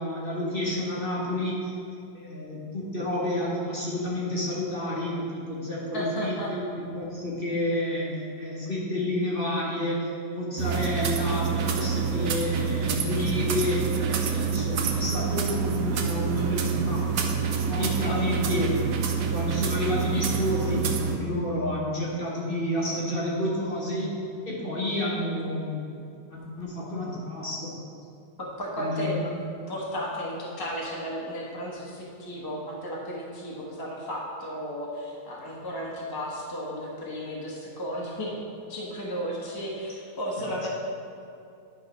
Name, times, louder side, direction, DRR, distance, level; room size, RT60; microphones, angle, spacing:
voice 1, 0.0-1.7 2.1-6.6 6.9-10.0 10.3-13.8 14.3-17.2 17.7-18.7 19.3-24.1 24.5-26.0 26.3-27.7 28.8-29.3 40.6-40.7, left 1 dB, 35° left, -5 dB, 1.2 m, -30 dB
voice 2, 5.9-6.5 11.4-11.5 18.0-18.2 28.4-29.2 29.7-38.3 38.7-40.7, equal, 15° left, -4 dB, 0.9 m, -34 dB
sound 1, 10.6-21.2, right 6 dB, 65° right, 0.9 m, -27 dB
10.5 x 4.0 x 5.1 m, 2.6 s
omnidirectional pair, 1.8 m